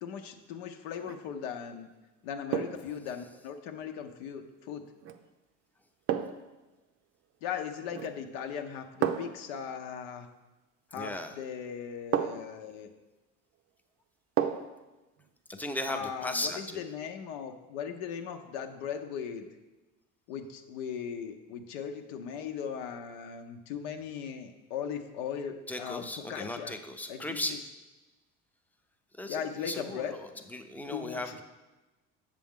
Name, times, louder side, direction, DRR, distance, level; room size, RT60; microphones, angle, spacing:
voice 1, 0.0-1.9 2.2-4.8 7.4-10.3 10.9-12.9 15.9-19.5 20.3-26.7 27.1-27.6 29.3-30.1 30.9-31.4, left 7 dB, 85° left, 5 dB, 0.7 m, -38 dB
sound 1, 0.9-1.3 2.5-2.9 5.0-5.2 6.1-6.5 7.9-8.3 9.0-9.5 11.1-11.2 12.1-12.6 14.4-14.8 15.2-15.3, right 9 dB, 50° right, 0.6 m, -32 dB
voice 2, 11.0-11.4 15.5-16.8 25.7-27.6 29.2-30.2 30.5-31.4, left 1 dB, 5° left, 6 dB, 0.5 m, -36 dB
7.5 x 6.8 x 3.6 m, 1.1 s
supercardioid pair, 115°, 29 cm